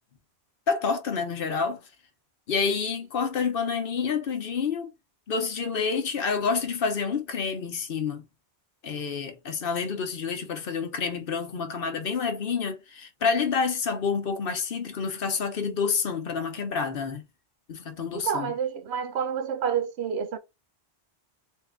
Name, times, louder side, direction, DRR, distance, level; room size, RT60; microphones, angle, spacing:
voice 1, 0.7-1.8 2.5-4.9 5.3-8.2 8.8-17.2 17.7-18.5, left 5 dB, 60° left, 0.9 m, -28 dB
voice 2, 18.1-20.4, right 7 dB, 80° right, 0.9 m, -29 dB
3.5 x 2.7 x 3.5 m
omnidirectional pair, 1.1 m